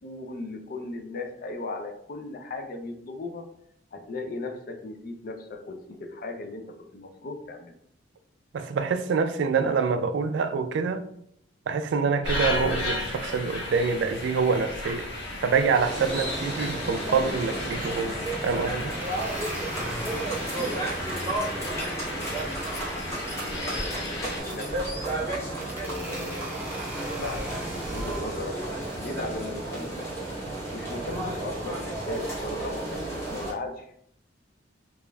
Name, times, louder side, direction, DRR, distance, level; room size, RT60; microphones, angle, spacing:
voice 1, 0.0-3.5 3.9-7.7 20.6-20.8 23.4-24.0 24.2-24.7 25.8-26.7 27.2-27.6 27.9-30.3 30.7-33.9, left 2 dB, 50° left, 0.4 m, -37 dB
voice 2, 8.5-11.0 11.7-15.1 15.4-18.9, right 5 dB, 65° right, 0.3 m, -26 dB
sound 1, 12.2-24.4, left 1 dB, 70° left, 1.3 m, -34 dB
sound 2, 15.8-33.5, right 2 dB, 15° left, 1.0 m, -33 dB
sound 3, 17.8-18.4 19.0-21.4 21.9-24.0 24.7-25.1 25.6-28.2, right 1 dB, 10° right, 0.6 m, -41 dB
4.9 x 2.4 x 2.3 m
head